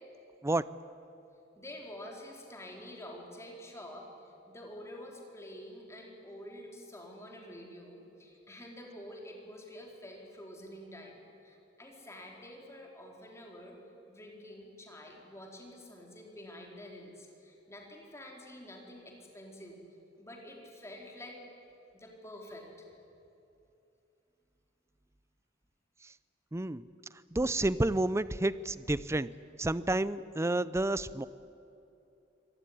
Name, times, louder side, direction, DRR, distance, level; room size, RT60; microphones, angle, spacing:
voice 1, 1.6-13.8 14.1-19.8 20.2-21.4 21.9-22.9, left 1 dB, 15° left, 0 dB, 4.1 m, -48 dB
voice 2, 26.5-26.9 27.3-29.3 29.6-31.3, right 2 dB, 15° right, 17 dB, 0.5 m, -30 dB
25.0 x 18.0 x 10.0 m, 2.8 s
head